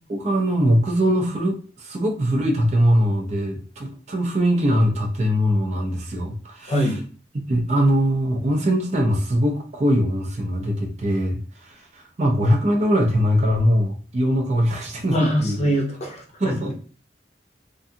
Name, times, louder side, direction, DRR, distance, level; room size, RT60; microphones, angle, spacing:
voice 1, 0.1-6.9 7.5-15.6 16.4-16.7, equal, 40° right, 2 dB, 0.5 m, -21 dB
voice 2, 6.7-7.0 15.1-16.2, equal, 35° left, 0 dB, 0.6 m, -22 dB
2.5 x 2.3 x 2.6 m, 0.39 s
head